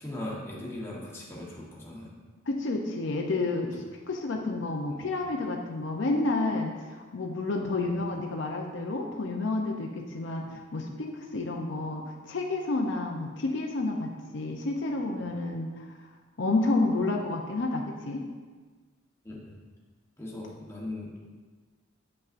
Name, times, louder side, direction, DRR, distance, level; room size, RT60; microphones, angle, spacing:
voice 1, 0.0-2.1 4.9-5.0 7.8-7.9 10.5-10.6 19.2-19.5 20.2-21.3, left 1 dB, 15° left, -5 dB, 1.1 m, -39 dB
voice 2, 2.5-15.9 16.4-18.2, left 2 dB, 65° left, 1 dB, 0.5 m, -30 dB
8.1 x 5.4 x 2.5 m, 1.4 s
head